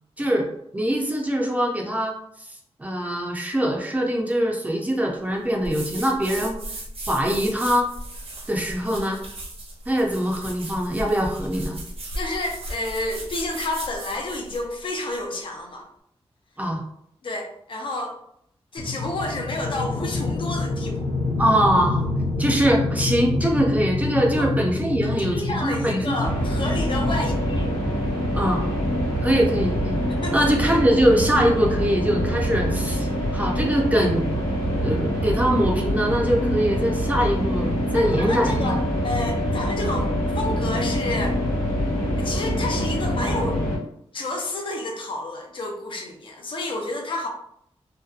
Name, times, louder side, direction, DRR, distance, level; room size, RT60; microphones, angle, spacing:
voice 1, 0.2-0.5 0.7-2.5 2.8-6.6 7.0-7.9 8.5-9.2 9.9-11.8 16.6-16.8 21.4-22.0 22.4-26.3 28.3-28.6 29.2-30.0 30.3-34.3 34.8-38.8, equal, 15° right, -1 dB, 0.4 m, -23 dB
sound 1, 5.6-14.7, right 1 dB, 65° right, 0.6 m, -36 dB
voice 2, 12.2-15.9 17.2-18.1 18.7-21.1 24.3-24.5 25.0-27.8 30.2-30.4 37.9-41.4 42.2-43.6 44.1-47.3, left 2 dB, 50° left, 2 dB, 0.4 m, -30 dB
sound 2, 18.8-31.0, left 2 dB, 90° left, 0.6 m, -28 dB
sound 3, 26.2-43.8, equal, 30° left, 1.1 m, -25 dB
2.7 x 2.1 x 2.3 m, 0.72 s
wide cardioid pair, 160°, 11 cm